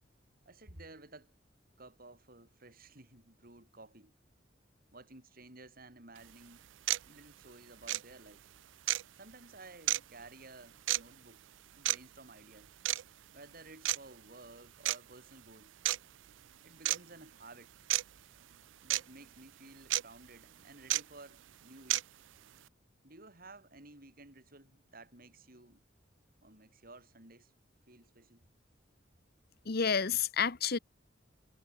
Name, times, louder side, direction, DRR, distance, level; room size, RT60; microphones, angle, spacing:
voice 1, 0.4-1.3 1.8-4.1 4.9-6.7 7.0-8.4 9.2-11.4 11.8-12.7 13.3-15.8 16.6-17.7 18.8-22.1 23.0-25.8 26.4-27.5 27.9-28.4, right 2 dB, 50° right, 6.6 m, -54 dB
sound 1, 6.2-6.3 6.9-7.0 7.8-8.0 8.9-9.0 9.9-10.0 10.9-11.0 11.8-12.0 12.8-13.0 13.8-14.0 14.8-15.0 15.8-16.0 16.8-17.0 17.9-18.0 18.9-19.0 19.9-20.0 20.9-21.0 21.9-22.0, right 16 dB, 85° right, 0.4 m, -29 dB
voice 2, 29.7-30.8, left 6 dB, 55° left, 1.0 m, -30 dB
head